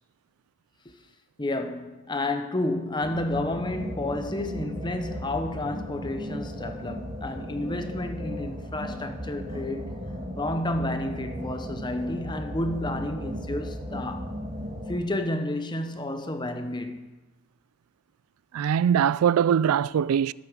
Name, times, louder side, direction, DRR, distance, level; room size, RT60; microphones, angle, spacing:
voice 1, 1.4-9.9 10.4-14.3 14.9-17.1, left 1 dB, 20° left, 0.7 m, -31 dB
sound 1, 3.0-15.0, equal, 30° right, 1.7 m, -36 dB
voice 2, 18.5-20.3, right 8 dB, 80° right, 0.3 m, -22 dB
12.0 x 8.1 x 6.3 m
head